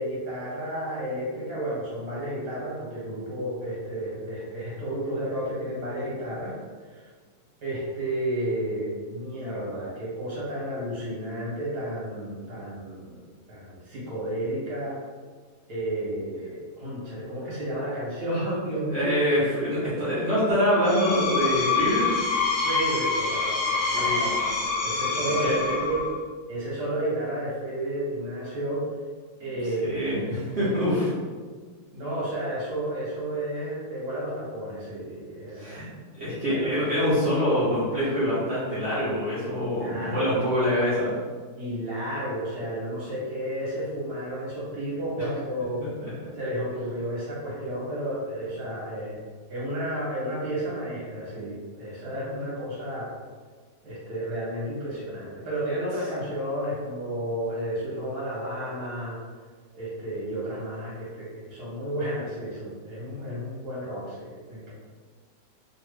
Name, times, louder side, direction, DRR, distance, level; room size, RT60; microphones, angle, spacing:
voice 1, 0.0-6.6 6.9-7.0 7.6-13.2 13.5-15.0 15.7-19.2 22.6-24.5 24.8-26.0 26.5-28.8 29.4-30.0 30.3-30.4 31.9-35.8 36.3-37.1 39.5-40.3 41.6-45.9 46.3-49.2 49.5-53.1 53.8-59.2 59.7-64.7, right 1 dB, 65° right, -7 dB, 1.8 m, -32 dB
voice 2, 18.9-22.1 23.9-24.3 25.2-25.8 29.8-31.1 35.6-35.8 36.2-41.1 46.0-46.3, equal, 40° right, -10 dB, 1.3 m, -25 dB
Screech, 20.7-26.2, left 4 dB, 60° left, 0.6 m, -26 dB
3.2 x 3.0 x 3.2 m, 1.5 s
omnidirectional pair, 1.8 m